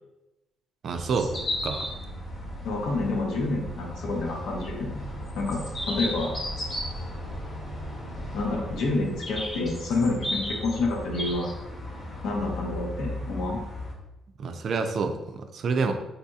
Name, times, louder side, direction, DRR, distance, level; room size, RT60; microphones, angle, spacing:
voice 1, 0.8-1.9 14.4-15.9, right 4 dB, 60° right, 7 dB, 0.4 m, -28 dB
sound 1, 0.9-13.9, left 1 dB, 50° left, 1.0 m, -35 dB
voice 2, 2.6-5.1 5.3-6.3 8.3-11.5 12.2-13.6, left 2 dB, 85° left, 0 dB, 0.7 m, -28 dB
4.1 x 2.7 x 2.3 m, 0.97 s
cardioid pair, 90°, 0 cm